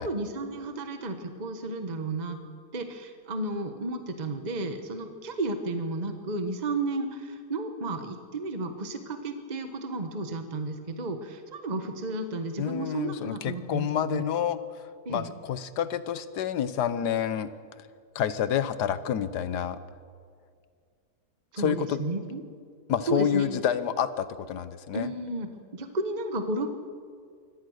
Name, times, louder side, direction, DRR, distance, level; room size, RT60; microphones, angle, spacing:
voice 1, 0.0-2.4 2.7-14.2 15.0-15.3 21.5-22.4 23.1-23.5 24.9-26.7, right 2 dB, 30° right, 7 dB, 1.3 m, -33 dB
voice 2, 12.6-14.6 15.1-17.5 18.1-19.8 21.6-22.0 22.9-25.1, left 9 dB, 90° left, 14 dB, 1.5 m, -28 dB
23.5 x 18.0 x 6.5 m, 2.1 s
omnidirectional pair, 1.7 m